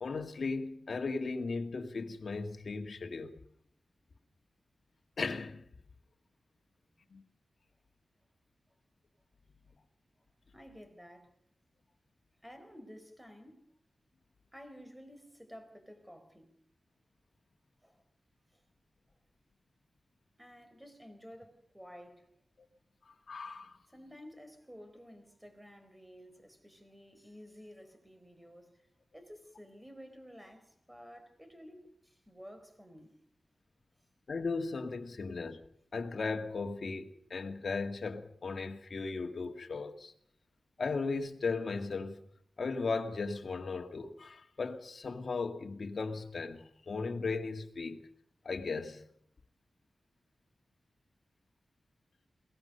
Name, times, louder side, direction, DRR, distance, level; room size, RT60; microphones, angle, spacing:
voice 1, 0.0-3.4 5.2-5.6 7.1-7.2 23.3-23.7 34.3-35.6 35.9-40.1 40.8-42.2 42.6-48.0 48.5-49.0, left 4 dB, 60° left, 1.9 m, -36 dB
voice 2, 10.5-11.3 12.4-13.6 14.5-16.5 17.8-18.0 18.5-18.6 20.4-22.3 23.9-28.7 29.1-33.1, equal, 5° right, 4.5 m, -52 dB
22.5 x 18.0 x 6.7 m
wide cardioid pair, 95°, 0 cm